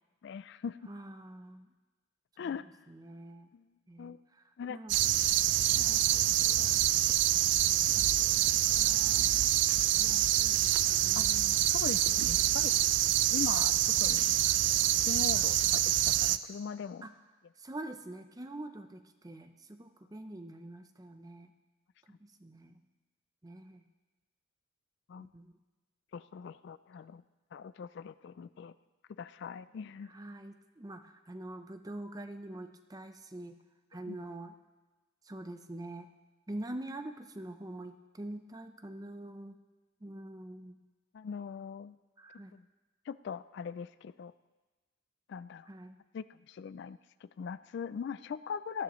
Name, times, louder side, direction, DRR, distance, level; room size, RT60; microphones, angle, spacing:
voice 1, 0.2-0.9 2.4-2.6 3.5-3.7 4.0-4.2 4.6-4.8 5.7-5.8 11.2-11.3 11.7-12.7 13.3-14.4 14.8-17.1 25.1-25.3 26.1-27.2 27.5-28.7 29.2-30.1 34.1-34.2 41.1-42.0 42.5-42.6 43.1-44.3 45.3-45.7 46.1-48.8, left 6 dB, 55° left, 15 dB, 0.3 m, -41 dB
voice 2, 0.9-1.7 2.4-2.6 2.9-3.5 3.9-4.2 4.7-5.0 5.7-6.8 7.9-9.2 10.0-11.6 12.1-12.7 17.0-17.1 17.6-21.5 22.2-22.8 23.4-23.8 25.3-25.5 30.1-33.5 33.9-34.5 35.3-36.1 36.5-39.6 40.0-40.8 42.2-42.5 45.7-46.0, right 1 dB, 20° right, 8 dB, 0.6 m, -45 dB
sound 1, 4.9-16.4, right 13 dB, 60° right, 0.4 m, -26 dB
18.0 x 13.5 x 3.1 m, 1.2 s
head